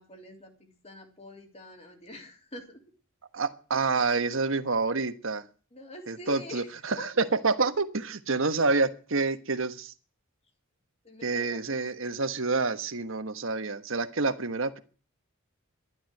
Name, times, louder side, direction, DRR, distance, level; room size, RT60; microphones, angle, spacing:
voice 1, 0.0-2.9 5.7-6.7 7.0-7.1 11.0-11.8, left 2 dB, 30° left, 3 dB, 3.4 m, -45 dB
voice 2, 3.3-5.4 6.1-6.6 7.4-9.9 11.2-14.8, right 3 dB, 70° right, 10 dB, 1.3 m, -28 dB
12.5 x 11.0 x 7.8 m, 0.39 s
head